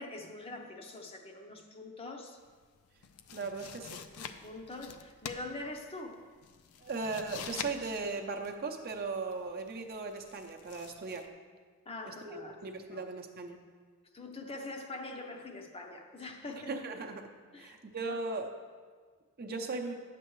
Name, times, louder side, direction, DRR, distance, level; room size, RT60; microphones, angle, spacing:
voice 1, 0.0-2.4 4.2-6.2 11.9-13.1 14.1-16.7 17.5-17.8 18.1-18.2 19.5-19.6, left 2 dB, 25° left, 3 dB, 0.6 m, -44 dB
sound 1, 2.4-11.3, left 7 dB, 75° left, 0.4 m, -47 dB
voice 2, 3.3-4.0 6.8-11.3 12.0-12.4 12.6-13.6 16.7-17.3 17.6-18.5 19.4-19.9, right 3 dB, 45° right, 3 dB, 0.7 m, -37 dB
10.0 x 7.6 x 3.1 m, 1.6 s
head